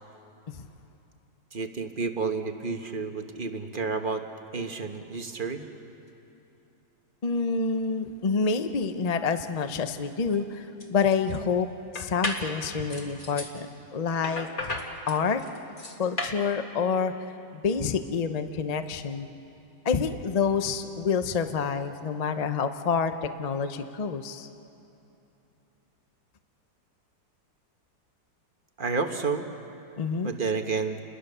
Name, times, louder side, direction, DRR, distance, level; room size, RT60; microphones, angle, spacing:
voice 1, 1.5-4.3 4.5-5.6 28.8-29.5 30.2-31.0, right 4 dB, 35° right, 6 dB, 1.1 m, -30 dB
voice 2, 7.2-11.7 11.9-14.8 15.1-15.4 16.0-17.1 17.5-19.3 19.8-24.5 30.0-30.3, left 5 dB, 45° left, 9 dB, 0.5 m, -28 dB
sound 1, 10.3-10.4 10.8-11.4 12.0-12.5 12.9-13.5 14.2-16.4, left 2 dB, 25° left, 2.1 m, -34 dB
29.5 x 21.5 x 6.8 m, 2.9 s
omnidirectional pair, 2.0 m